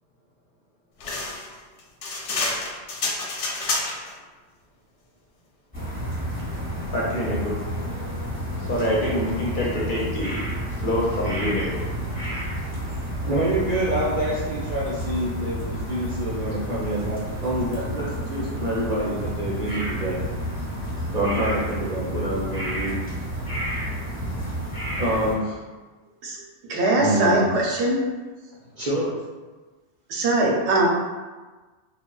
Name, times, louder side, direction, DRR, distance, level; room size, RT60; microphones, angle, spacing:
sound 1, 1.0-4.1, left 3 dB, 90° left, 0.9 m, -28 dB
sound 2, 5.7-25.4, equal, 10° left, 0.8 m, -30 dB
voice 1, 6.9-7.6 8.6-11.8, left 1 dB, 60° left, -5 dB, 0.6 m, -26 dB
voice 2, 13.3-20.2 21.1-23.0 25.0-25.6 26.9-27.6 28.8-29.1, right 1 dB, 50° right, -7 dB, 0.5 m, -26 dB
voice 3, 26.7-28.1 30.1-30.9, right 2 dB, 75° right, -2 dB, 0.9 m, -21 dB
3.1 x 2.1 x 2.2 m, 1.3 s
omnidirectional pair, 1.2 m